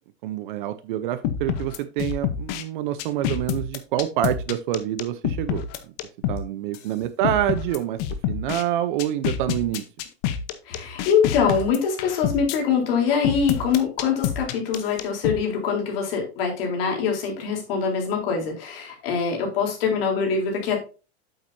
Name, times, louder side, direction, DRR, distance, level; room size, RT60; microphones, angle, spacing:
voice 1, 0.2-5.9 6.3-8.0 8.3-9.8, right 12 dB, 50° right, 13 dB, 0.7 m, -27 dB
sound 1, 1.2-2.6 3.0-6.4 6.7-6.8 7.2-8.6 9.0-12.6 13.2-15.4, left 9 dB, 35° left, 0.9 m, -27 dB
voice 2, 10.7-20.8, left 6 dB, 60° left, 1 dB, 3.9 m, -24 dB
8.7 x 7.8 x 2.7 m, 0.33 s
supercardioid pair, 175°, 33 cm